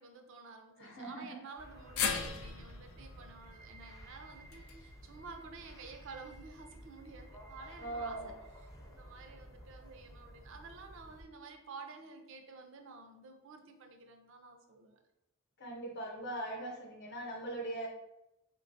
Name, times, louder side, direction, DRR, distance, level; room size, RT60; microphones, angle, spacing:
voice 1, 0.0-15.0, right 4 dB, 65° right, 5 dB, 0.4 m, -51 dB
voice 2, 0.8-1.4 7.8-8.3 15.6-17.9, right 1 dB, 55° left, 0 dB, 0.7 m, -40 dB
sound 1, 1.6-11.2, equal, 15° left, 0.4 m, -53 dB
sound 2, 2.0-6.2 6.6-6.7 7.8-7.9, left 6 dB, 85° left, 0.4 m, -40 dB
3.2 x 2.2 x 2.5 m, 0.88 s
head